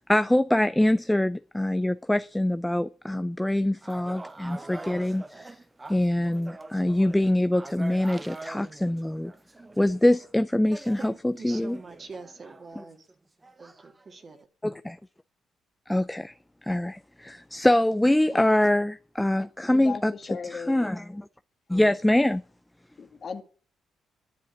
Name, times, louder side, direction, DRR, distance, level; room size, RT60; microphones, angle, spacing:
voice 1, 0.0-5.5 5.9-9.3 9.8-11.8 14.6-15.0 15.9-16.3 16.7-20.1 20.5-21.3 21.7-22.4, left 1 dB, 5° left, 0.5 m, -24 dB
sound 1, 3.8-10.3 10.7-13.1 13.4-14.4, right 2 dB, 20° right, 0.8 m, -44 dB
voice 2, 11.0-13.1 13.6-14.4, right 4 dB, 40° right, 2.2 m, -44 dB
voice 3, 19.7-21.0 23.0-23.4, left 5 dB, 45° left, 1.8 m, -37 dB
10.5 x 7.3 x 9.4 m
cardioid pair, 90°, 0 cm